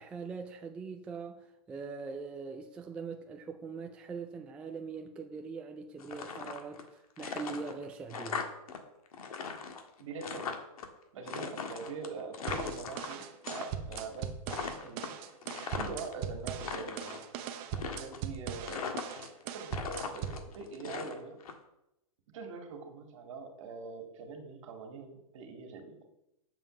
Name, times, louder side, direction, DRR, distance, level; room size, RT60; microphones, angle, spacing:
voice 1, 0.0-8.4, right 5 dB, 5° right, 0.3 m, -42 dB
sound 1, 6.0-6.9 7.2-8.8 9.1-10.9 11.3-13.6 13.9-14.2 14.5-16.1 16.5-17.2 17.7-18.4 18.7-19.4 19.7-21.5, left 6 dB, 70° left, 1.6 m, -39 dB
voice 2, 10.0-10.6 11.1-15.2 15.7-17.2 17.9-18.9 19.4-21.4 22.3-26.0, right 4 dB, 55° right, 2.1 m, -43 dB
sound 2, 12.5-20.5, right 8 dB, 30° right, 0.9 m, -40 dB
7.2 x 5.8 x 7.0 m
hypercardioid pair, 155°, 19 cm